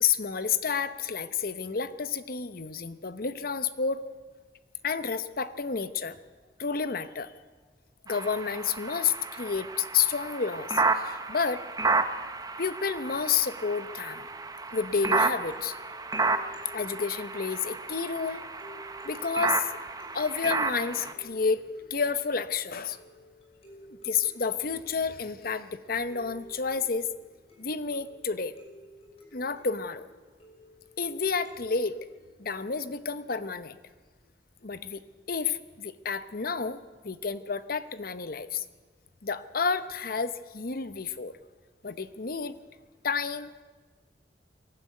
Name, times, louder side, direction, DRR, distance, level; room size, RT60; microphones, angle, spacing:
voice 1, 0.0-4.0 4.8-6.2 6.6-7.3 8.1-11.6 12.6-14.3 14.7-15.8 16.7-18.4 19.0-19.7 20.1-21.6 21.9-23.0 24.0-27.1 27.6-28.5 29.3-30.1 31.0-31.9 32.4-33.8 34.6-35.0 35.3-38.6 39.2-41.4 41.8-42.5 43.0-43.6, left 5 dB, 55° left, 12 dB, 0.9 m, -30 dB
sound 1, 8.1-21.1, right 3 dB, 20° right, 1.0 m, -31 dB
sound 2, 13.7-32.9, equal, 35° left, 6.0 m, -54 dB
23.0 x 12.5 x 9.4 m, 1.4 s
head